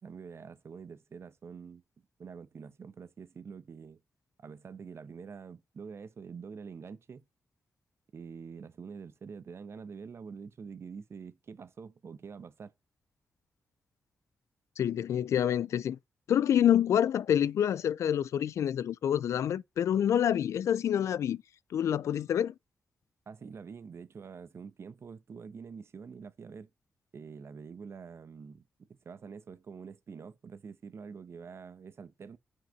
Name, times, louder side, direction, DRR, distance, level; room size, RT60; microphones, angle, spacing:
voice 1, 0.0-1.8 2.2-4.0 4.4-7.2 8.1-12.7 23.3-26.7 27.1-28.6 28.9-32.4, right 5 dB, 60° right, 1.0 m, -46 dB
voice 2, 14.8-16.0 16.3-21.4 21.7-22.5, left 9 dB, 75° left, 0.4 m, -27 dB
5.8 x 5.1 x 5.2 m
supercardioid pair, 40°, 5 cm